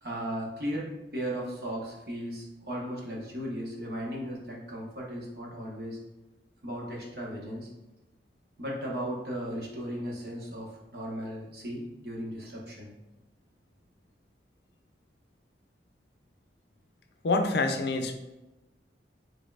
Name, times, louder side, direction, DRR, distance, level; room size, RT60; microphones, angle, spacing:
voice 1, 0.0-6.0 6.6-7.7 8.6-12.9, equal, 60° right, -3 dB, 1.2 m, -36 dB
voice 2, 17.2-18.1, left 3 dB, 65° left, 5 dB, 0.5 m, -26 dB
5.2 x 4.0 x 2.4 m, 1.0 s
head